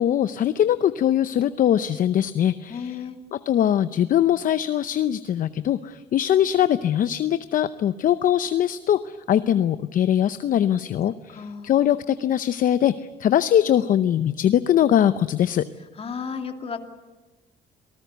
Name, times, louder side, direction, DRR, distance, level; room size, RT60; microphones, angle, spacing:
voice 1, 0.0-3.0 3.5-15.7, left 10 dB, 55° left, 13 dB, 0.7 m, -21 dB
voice 2, 2.7-3.2 11.3-11.7 16.0-16.8, left 6 dB, 35° left, 6 dB, 2.5 m, -33 dB
27.5 x 19.0 x 8.1 m, 1.1 s
cardioid pair, 110°, 17 cm